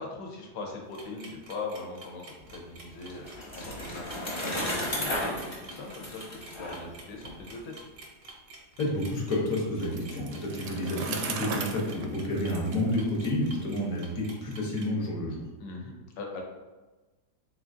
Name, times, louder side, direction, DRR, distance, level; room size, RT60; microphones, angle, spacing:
voice 1, 0.0-7.7 15.6-16.4, left 3 dB, 75° left, 1 dB, 1.4 m, -40 dB
sound 1, 0.9-14.9, right 2 dB, 55° right, 0.7 m, -49 dB
Bicycle, 2.5-7.6, left 1 dB, 30° left, 0.5 m, -34 dB
voice 2, 8.8-15.4, left 1 dB, 55° left, -2 dB, 1.2 m, -30 dB
Bicycle 2, 9.8-13.6, right 4 dB, 75° right, 1.1 m, -37 dB
3.9 x 3.7 x 2.5 m, 1.2 s
omnidirectional pair, 1.9 m